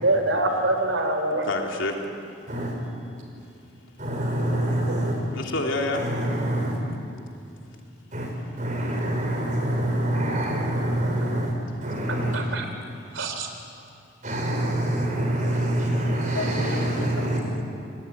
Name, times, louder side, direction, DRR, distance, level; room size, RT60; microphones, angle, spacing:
voice 1, 0.0-1.5 4.2-5.2 12.3-12.7 13.1-13.5, right 2 dB, 80° right, 6 dB, 3.5 m, -26 dB
voice 2, 1.3-1.9 5.3-6.0 16.3-17.6, left 2 dB, 80° left, 1 dB, 3.5 m, -29 dB
voice 3, 4.0-5.2 5.9-6.8 8.1-8.3 8.6-11.5 11.8-12.4 14.2-17.4, right 1 dB, 40° right, 1 dB, 5.8 m, -25 dB
29.5 x 19.0 x 9.6 m, 2.5 s
head